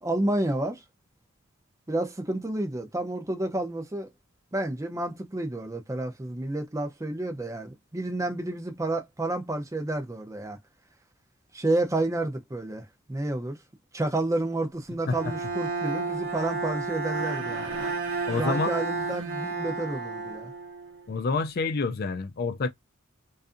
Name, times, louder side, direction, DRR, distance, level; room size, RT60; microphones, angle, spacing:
voice 1, 0.0-0.8 1.9-4.1 4.5-10.6 11.5-13.6 13.9-17.7 18.4-20.5, right 2 dB, 15° right, 0.5 m, -30 dB
Bowed string instrument, 15.1-21.1, right 4 dB, 55° right, 0.7 m, -32 dB
voice 2, 18.3-18.8 21.1-22.7, left 4 dB, 45° left, 0.4 m, -28 dB
2.6 x 2.4 x 2.4 m
head